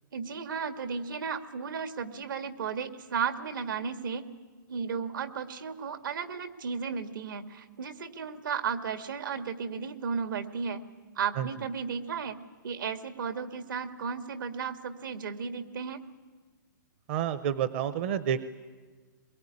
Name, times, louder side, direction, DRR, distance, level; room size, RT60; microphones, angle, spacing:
voice 1, 0.1-4.2 4.7-10.8 11.2-12.4 12.6-16.0, right 6 dB, 75° right, 7 dB, 2.0 m, -34 dB
voice 2, 17.1-18.5, right 9 dB, 35° right, 13 dB, 0.7 m, -29 dB
22.5 x 22.5 x 9.9 m, 1.4 s
hypercardioid pair, 160°, 11 cm